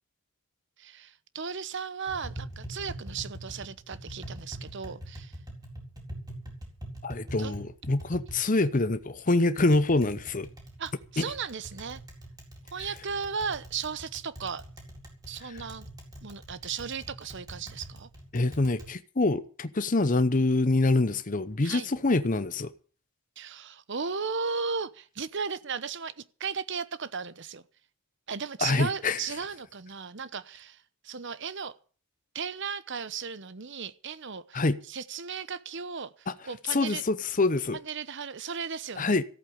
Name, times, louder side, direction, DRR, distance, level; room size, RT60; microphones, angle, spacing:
voice 1, 0.8-5.4 7.3-7.5 10.8-12.0 12.7-14.6 15.3-15.9 16.2-18.1 21.6-21.9 23.4-27.6 28.3-31.7 32.3-37.0 37.8-39.2, right 5 dB, 55° right, 0.9 m, -36 dB
Tap, 2.1-18.9, right 1 dB, 15° right, 4.1 m, -44 dB
voice 2, 7.0-10.5 11.2-11.3 15.5-15.6 18.3-22.7 28.6-29.2 34.5-34.8 36.3-36.4 36.7-37.8 39.0-39.2, left 2 dB, 35° left, 0.8 m, -25 dB
14.5 x 8.5 x 8.7 m
head